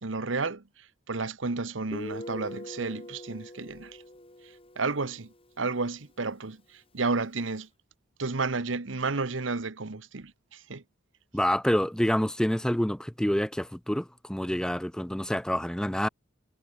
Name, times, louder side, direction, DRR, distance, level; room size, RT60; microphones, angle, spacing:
voice 1, 0.0-4.0 4.8-7.7 8.2-10.8, right 3 dB, 85° right, 1.2 m, -32 dB
Guitar, 1.9-5.4, left 1 dB, 30° left, 4.2 m, -42 dB
voice 2, 11.3-16.1, equal, 5° left, 0.5 m, -27 dB
head